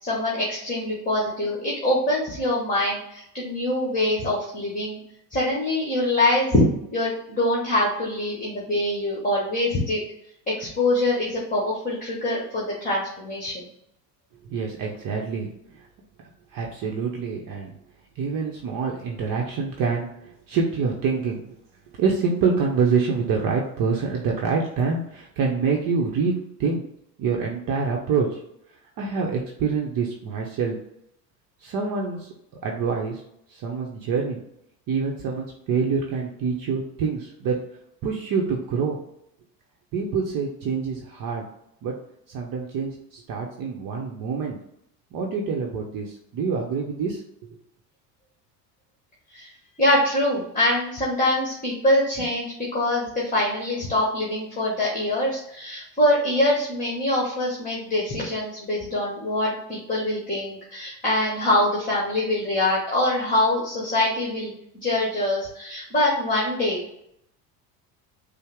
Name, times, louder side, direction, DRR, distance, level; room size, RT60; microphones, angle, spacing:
voice 1, 0.0-5.0 5.3-6.6 6.9-10.0 10.5-13.6 49.3-49.5 49.8-66.8, left 1 dB, 15° left, -4 dB, 1.3 m, -24 dB
voice 2, 14.4-15.9 16.5-17.7 18.2-21.6 21.9-26.3 26.6-26.8 27.2-28.4 29.0-30.8 31.6-32.3 32.6-33.2 33.5-34.4 34.9-37.6 38.0-39.0 39.9-41.4 41.8-41.9 42.3-44.6 45.1-47.6, right 5 dB, 45° right, 0 dB, 0.8 m, -26 dB
5.3 x 2.1 x 3.5 m, 0.76 s
hypercardioid pair, 80°, 48 cm